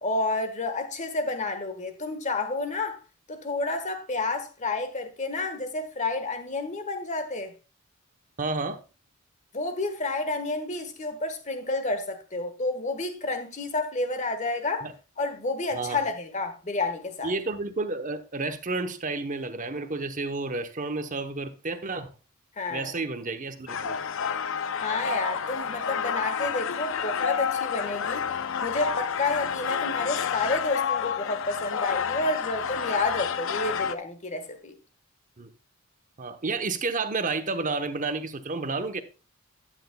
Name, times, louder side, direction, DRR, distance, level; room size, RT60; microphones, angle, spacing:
voice 1, 0.0-3.0 3.3-7.5 9.5-14.9 15.2-17.3 22.6-22.9 24.8-28.2 28.6-34.7, left 2 dB, 35° left, 1.4 m, -30 dB
voice 2, 8.4-8.8 14.8-14.9 15.7-16.0 17.2-22.1 22.7-24.0 35.4-35.5 36.2-39.0, right 3 dB, 35° right, 0.9 m, -31 dB
sound 1, 23.7-33.9, left 7 dB, 65° left, 0.6 m, -29 dB
12.0 x 9.2 x 2.3 m
head